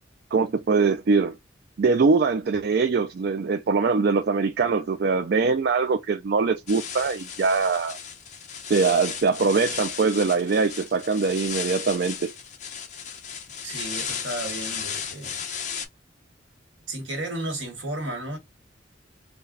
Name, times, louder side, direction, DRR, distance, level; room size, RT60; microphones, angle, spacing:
voice 1, 0.3-1.4 1.8-8.0 8.7-12.3, right 4 dB, 55° right, 0.4 m, -22 dB
sound 1, 6.7-15.8, left 7 dB, 40° left, 0.9 m, -35 dB
voice 2, 13.6-15.4 16.9-18.4, right 1 dB, 85° right, 1.7 m, -33 dB
4.0 x 2.2 x 3.9 m
head